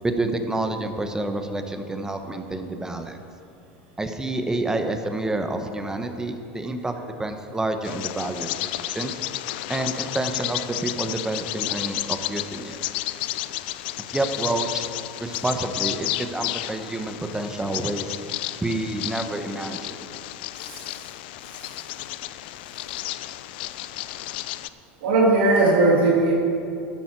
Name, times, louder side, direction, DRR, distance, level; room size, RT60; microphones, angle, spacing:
voice 1, 0.0-3.2 4.0-9.2 9.7-12.8 14.1-14.8 15.2-18.2 18.6-20.1, right 2 dB, 10° right, 7 dB, 1.0 m, -28 dB
Bird vocalization bird call bird song, 7.8-24.7, left 16 dB, 70° left, 0.4 m, -32 dB
voice 2, 25.0-26.3, right 2 dB, 80° right, -3 dB, 2.3 m, -18 dB
12.5 x 9.3 x 4.7 m, 2.6 s
hypercardioid pair, 100°, 5 cm